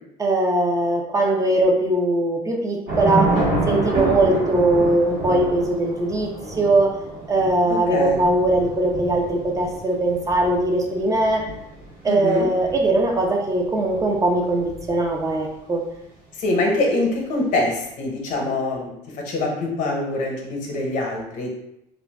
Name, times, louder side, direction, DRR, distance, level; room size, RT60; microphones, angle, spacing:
voice 1, 0.2-3.3 3.7-6.3 6.6-6.9 7.3-11.4 12.0-15.8, right 2 dB, 25° right, 0 dB, 0.5 m, -20 dB
Thunder / Rain, 2.9-15.4, right 2 dB, 65° right, 1.1 m, -29 dB
voice 2, 7.7-8.2 12.1-12.5 16.4-21.5, left 2 dB, 65° left, 0 dB, 0.8 m, -24 dB
2.5 x 2.2 x 3.4 m, 0.84 s
cardioid pair, 110°, 14 cm